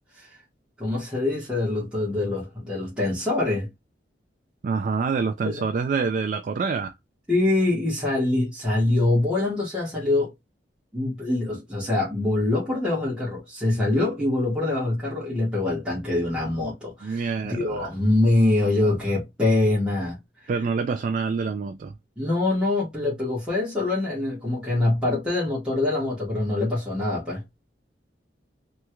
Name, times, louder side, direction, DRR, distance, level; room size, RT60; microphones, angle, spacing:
voice 1, 0.8-3.7 5.4-5.6 7.3-10.3 10.9-20.2 22.2-27.4, left 2 dB, 5° right, 1.5 m, -24 dB
voice 2, 4.6-6.9 17.0-17.9 20.5-22.0, right 5 dB, 45° right, 0.3 m, -26 dB
3.3 x 3.0 x 2.2 m
head